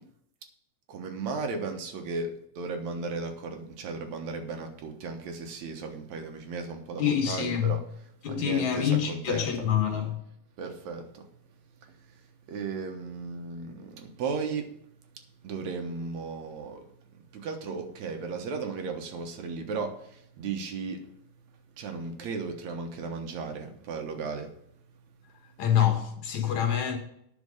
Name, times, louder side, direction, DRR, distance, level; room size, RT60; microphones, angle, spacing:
voice 1, 0.9-7.8 8.3-9.7 10.6-11.3 11.8-14.8 15.4-21.1 21.8-24.6, right 4 dB, 70° right, 2.4 m, -36 dB
voice 2, 7.0-7.8 8.2-10.2 25.6-27.0, left 9 dB, 75° left, 2.8 m, -26 dB
9.4 x 6.4 x 6.4 m
omnidirectional pair, 3.3 m